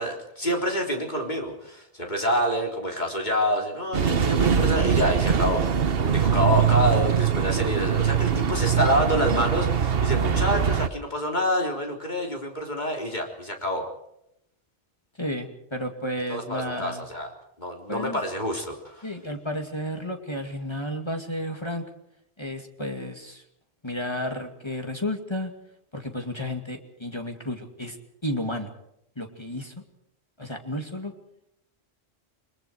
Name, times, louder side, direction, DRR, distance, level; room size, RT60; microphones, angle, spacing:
voice 1, 0.0-13.9 16.3-17.3 17.6-19.1, equal, 45° left, 2 dB, 3.9 m, -27 dB
sound 1, 3.9-10.9, right 7 dB, 60° right, 1.2 m, -22 dB
voice 2, 15.2-17.0 17.9-18.2 19.0-21.9 22.4-23.4 23.8-25.5 25.9-28.0 28.2-28.7 29.2-29.7 30.4-31.1, left 1 dB, 25° left, 4 dB, 2.4 m, -32 dB
29.0 x 21.5 x 4.6 m, 0.77 s
omnidirectional pair, 1.1 m